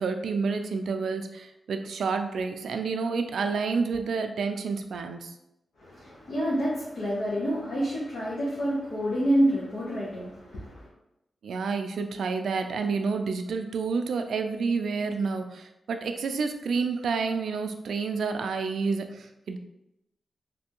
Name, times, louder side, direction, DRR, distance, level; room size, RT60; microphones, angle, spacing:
voice 1, 0.0-5.3 11.4-19.6, right 4 dB, 85° right, 7 dB, 0.3 m, -29 dB
voice 2, 5.8-10.9, equal, 70° left, -6 dB, 0.9 m, -28 dB
3.3 x 2.6 x 2.9 m, 0.86 s
cardioid pair, 80°, 0 cm